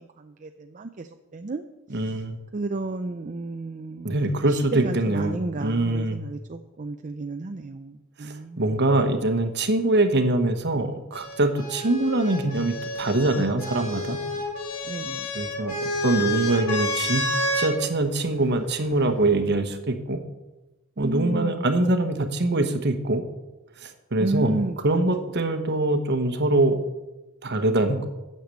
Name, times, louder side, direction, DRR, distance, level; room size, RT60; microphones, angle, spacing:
voice 1, 0.0-1.6 1.9-2.2 2.5-4.2 4.5-8.7 14.8-15.3 21.0-22.0 24.2-25.3, right 2 dB, 35° right, 6 dB, 0.5 m, -32 dB
voice 2, 1.9-2.4 4.0-6.2 8.2-14.2 15.3-15.7 16.0-17.2 17.6-20.2 21.0-23.2 23.8-24.6 24.8-26.8 27.4-28.1, right 2 dB, 50° right, 8 dB, 1.2 m, -23 dB
sound 1, 11.1-17.7 18.8-19.5, left 1 dB, 75° left, 3.9 m, -29 dB
9.5 x 6.7 x 8.3 m, 1.0 s
head